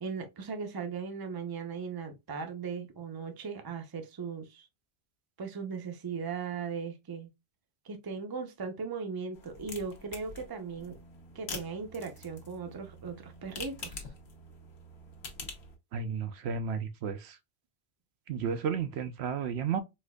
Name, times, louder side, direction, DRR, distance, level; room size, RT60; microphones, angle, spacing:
voice 1, 0.0-4.7 5.4-7.3 7.8-11.0 11.3-14.1, right 5 dB, 30° right, 0.5 m, -38 dB
sound 1, 9.3-15.8, left 3 dB, 75° left, 1.2 m, -45 dB
voice 2, 15.9-17.4 18.3-19.8, right 6 dB, 80° right, 0.8 m, -33 dB
4.3 x 2.5 x 2.2 m
omnidirectional pair, 1.1 m